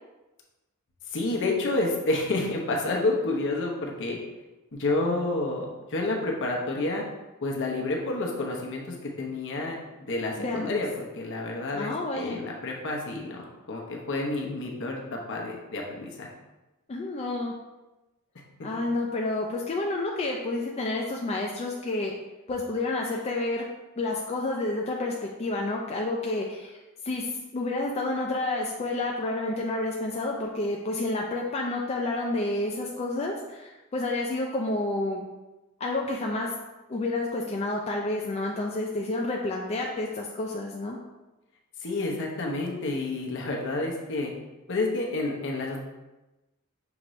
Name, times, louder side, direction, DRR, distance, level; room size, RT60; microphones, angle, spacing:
voice 1, 1.1-4.2 4.7-7.0 7.4-16.3 18.6-18.7 41.8-44.3 44.7-45.8, left 2 dB, 55° left, 0 dB, 0.8 m, -29 dB
voice 2, 10.4-10.8 11.7-12.4 16.9-17.5 18.6-22.1 22.5-23.6 24.0-26.7 27.0-35.2 35.8-36.5 36.9-41.0, left 2 dB, 30° left, -1 dB, 0.3 m, -29 dB
5.8 x 2.6 x 3.1 m, 1.1 s
head